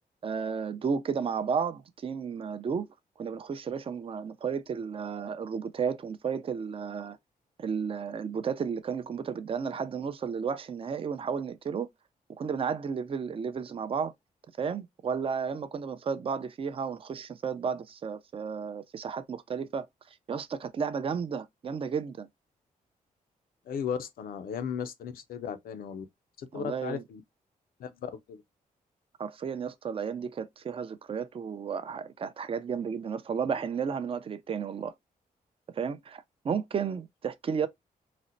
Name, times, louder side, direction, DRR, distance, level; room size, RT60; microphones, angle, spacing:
voice 1, 0.2-2.9 3.2-7.2 7.6-11.9 12.4-14.1 14.6-19.9 20.3-22.3 26.5-27.0 29.2-34.9 35.7-37.7, right 6 dB, 40° right, 0.4 m, -33 dB
voice 2, 23.7-26.1 26.4-27.2 27.8-28.4, left 7 dB, 85° left, 0.5 m, -36 dB
4.1 x 2.1 x 2.5 m
cardioid pair, 95°, 15 cm